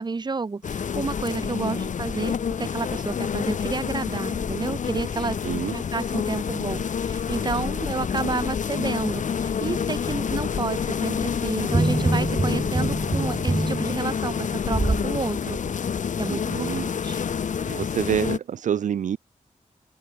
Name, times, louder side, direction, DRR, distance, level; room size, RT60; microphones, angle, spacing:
voice 1, 0.0-5.4 5.7-15.6 16.2-17.2, right 4 dB, 35° right, 1.6 m, -30 dB
sound 1, 0.6-18.4, left 7 dB, 75° left, 1.7 m, -28 dB
voice 2, 5.4-5.7 16.3-16.8 17.6-19.2, right 9 dB, 70° right, 0.5 m, -27 dB
sound 2, 11.7-15.1 15.6-15.7, right 3 dB, 15° right, 0.5 m, -25 dB
open air
wide cardioid pair, 135°, 13 cm